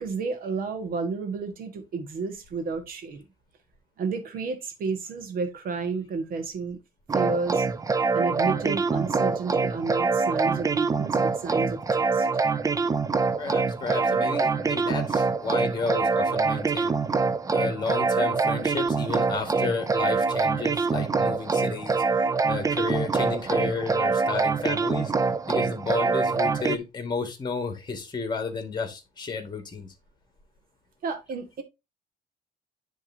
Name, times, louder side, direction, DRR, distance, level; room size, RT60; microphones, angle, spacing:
voice 1, 0.0-3.2 4.0-6.8 7.1-7.7 8.1-12.3 31.0-31.6, right 4 dB, 60° right, 1.6 m, -31 dB
sound 1, 7.1-26.8, right 4 dB, 20° right, 0.5 m, -25 dB
voice 2, 13.4-16.9 17.5-22.0 22.5-25.1 25.5-29.9, left 4 dB, 25° left, 2.0 m, -32 dB
10.0 x 3.6 x 2.8 m
cardioid pair, 110°, 17 cm